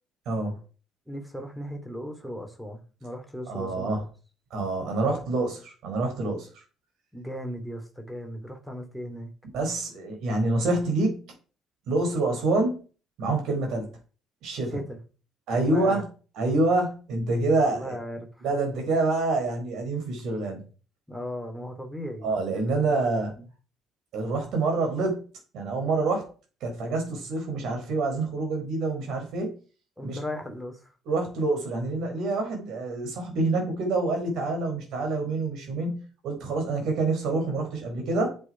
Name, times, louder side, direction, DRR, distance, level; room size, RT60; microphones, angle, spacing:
voice 1, 0.3-0.6 3.5-4.0 4.5-5.6 5.8-6.5 9.5-11.2 11.9-12.8 13.2-13.9 14.4-14.8 15.5-16.0 16.3-18.0 18.4-20.6 22.2-23.3 24.1-25.2 25.5-26.3 26.6-29.6 30.0-30.2 31.1-38.4, right 2 dB, 55° right, 3 dB, 4.1 m, -27 dB
voice 2, 1.1-4.0 5.0-5.2 7.1-9.3 14.7-15.0 15.5-16.0 17.7-18.4 21.1-23.1 23.4-23.5 30.0-30.9, equal, 5° right, 5 dB, 2.7 m, -37 dB
8.1 x 8.0 x 4.8 m, 0.37 s
figure-of-eight pair, 50°, 0 cm